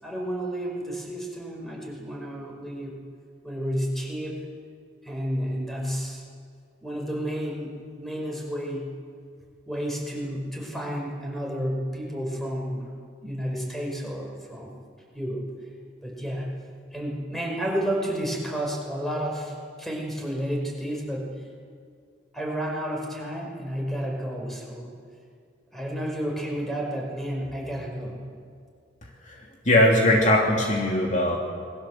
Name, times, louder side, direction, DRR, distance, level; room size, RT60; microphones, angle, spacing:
voice 1, 0.0-3.0 3.4-4.4 5.0-6.2 6.8-8.9 9.7-12.9 13.2-14.7 15.1-15.5 16.0-16.5 16.9-21.4 22.3-24.9 25.7-28.2, equal, ahead, -1 dB, 5.4 m, -31 dB
voice 2, 29.6-31.4, left 1 dB, 40° left, -1 dB, 2.8 m, -20 dB
28.5 x 22.0 x 7.8 m, 2.2 s
head